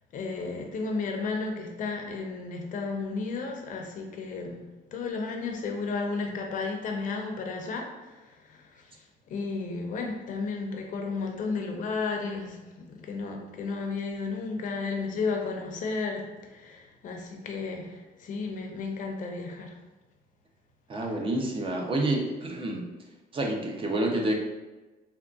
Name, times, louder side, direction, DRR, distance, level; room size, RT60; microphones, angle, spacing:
voice 1, 0.1-4.6 4.9-19.7, left 4 dB, 50° left, 2 dB, 0.6 m, -33 dB
voice 2, 20.9-22.8 23.3-24.3, right 1 dB, 30° right, 1 dB, 0.6 m, -28 dB
3.6 x 2.2 x 2.3 m, 1.2 s
cardioid pair, 110°, 17 cm